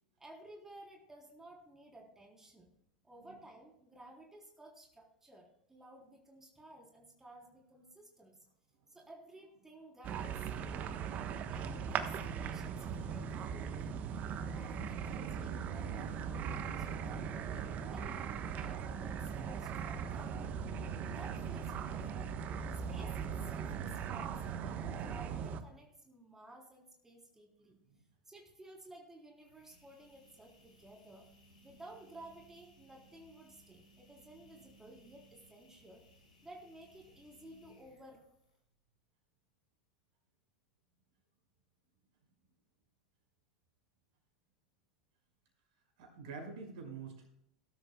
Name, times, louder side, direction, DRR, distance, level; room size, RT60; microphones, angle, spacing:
voice 1, 0.2-2.7 3.0-8.4 8.9-11.0 11.5-14.0 14.4-17.5 17.9-20.6 21.1-22.3 22.9-27.8 28.2-31.3 31.6-36.0 36.4-38.2, right 1 dB, 10° right, 0 dB, 3.8 m, -55 dB
sound 1, 10.0-25.6, right 7 dB, 40° right, 1.2 m, -39 dB
sound 2, 29.3-38.7, right 1 dB, 85° left, 6.2 m, -64 dB
voice 2, 46.0-47.3, right 4 dB, 60° right, 3 dB, 5.4 m, -47 dB
19.5 x 12.5 x 2.3 m, 0.75 s
figure-of-eight pair, 85°, 4 cm